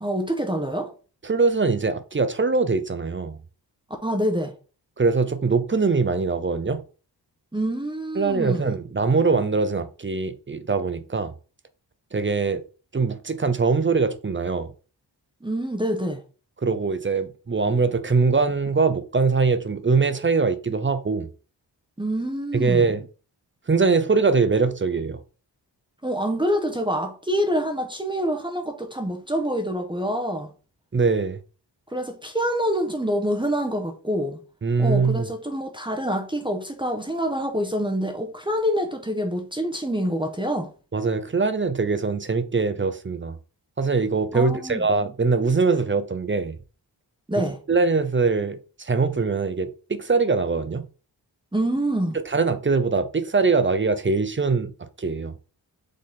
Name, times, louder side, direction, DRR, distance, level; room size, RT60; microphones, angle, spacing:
voice 1, 0.0-0.9 4.0-4.5 7.5-8.8 15.4-16.2 22.0-22.9 26.0-30.5 31.9-34.4 34.8-40.7 44.3-44.8 47.3-47.6 51.5-52.2, equal, 10° right, 1.0 m, -26 dB
voice 2, 1.2-3.4 5.0-6.8 8.2-11.3 12.1-12.6 12.9-14.7 16.6-21.3 22.5-23.0 23.7-25.2 30.9-31.4 34.6-35.3 40.9-43.3 43.8-46.6 47.7-50.8 52.3-55.3, right 4 dB, 30° right, 0.6 m, -22 dB
6.5 x 4.0 x 3.6 m
wide cardioid pair, 105°, 42 cm